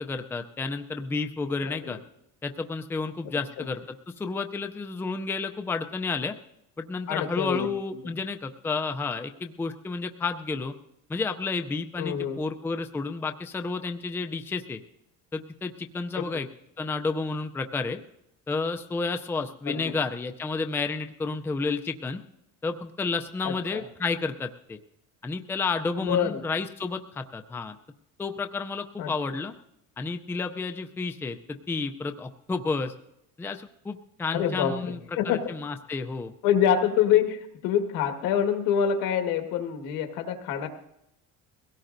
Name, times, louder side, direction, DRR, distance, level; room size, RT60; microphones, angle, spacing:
voice 1, 0.0-2.0 2.4-6.3 6.8-10.7 11.1-14.8 15.3-16.5 16.8-18.0 18.5-22.2 22.6-24.8 25.2-27.8 28.2-29.5 30.0-32.9 33.4-35.0 35.3-36.3, left 4 dB, 5° left, 6 dB, 0.4 m, -31 dB
voice 2, 7.1-7.7 12.0-12.4 19.7-19.9 23.4-23.8 26.0-26.5 29.0-29.1 34.3-35.4 36.4-40.7, left 9 dB, 80° left, 5 dB, 1.8 m, -26 dB
22.5 x 17.0 x 2.6 m, 0.80 s
cardioid pair, 160°, 33 cm